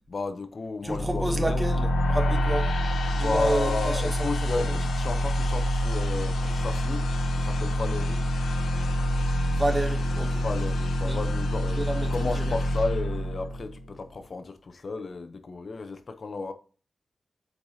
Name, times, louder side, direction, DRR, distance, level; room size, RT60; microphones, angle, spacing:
voice 1, 0.1-1.6 3.1-7.1 7.4-8.3 10.4-16.5, left 3 dB, 45° left, 0.7 m, -33 dB
voice 2, 0.8-2.7 3.1-4.0 9.5-10.4 11.1-11.2 11.7-12.5, right 1 dB, 15° right, 0.9 m, -30 dB
sound 1, 0.9-13.9, left 1 dB, 90° left, 0.8 m, -27 dB
8.5 x 4.7 x 2.8 m
wide cardioid pair, 140°, 0 cm